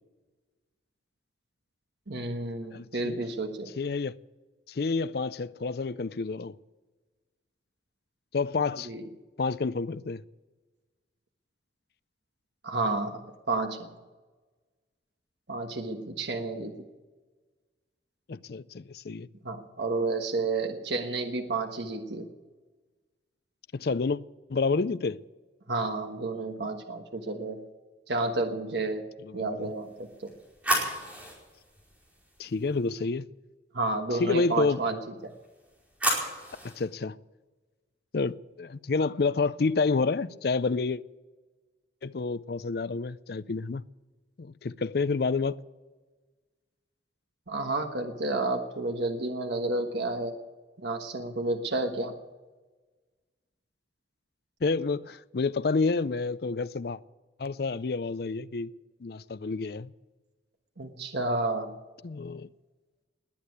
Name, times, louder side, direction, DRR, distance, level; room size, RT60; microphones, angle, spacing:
voice 1, 2.1-3.7 8.9-9.1 12.6-13.2 13.5-13.9 15.5-16.7 19.4-22.3 25.7-27.6 28.1-29.1 29.3-30.3 33.7-35.3 47.5-50.3 50.8-52.1 60.8-61.8, right 2 dB, 70° right, 1.3 m, -31 dB
voice 2, 2.7-3.2 3.8-4.2 4.7-6.6 8.3-8.9 9.4-10.2 18.3-19.3 23.7-24.2 24.5-25.2 29.2-29.7 32.4-33.3 34.1-34.8 36.6-37.2 38.1-41.0 42.0-43.8 44.4-45.6 54.6-57.0 57.4-58.7 59.0-59.9 62.0-62.5, left 4 dB, 55° left, 0.5 m, -29 dB
sound 1, 29.8-32.9 35.3-36.8, right 1 dB, 5° right, 5.0 m, -33 dB
20.5 x 8.5 x 8.3 m
head